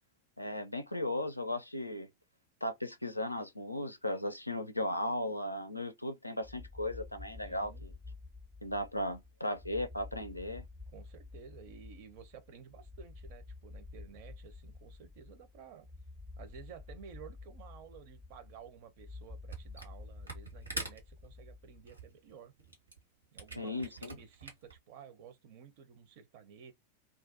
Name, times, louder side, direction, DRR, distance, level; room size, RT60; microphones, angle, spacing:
voice 1, 0.4-2.1 2.6-7.9 8.6-10.6 23.6-24.2, left 1 dB, 85° left, 0.4 m, -36 dB
sound 1, 6.4-22.0, left 3 dB, 5° right, 0.5 m, -50 dB
voice 2, 7.4-7.9 10.9-15.9 16.4-22.5 23.3-26.7, right 7 dB, 50° right, 0.6 m, -53 dB
Camera, 19.5-20.0 20.2-24.8, right 2 dB, 80° right, 1.0 m, -44 dB
2.4 x 2.2 x 2.5 m
figure-of-eight pair, 90°, 0 cm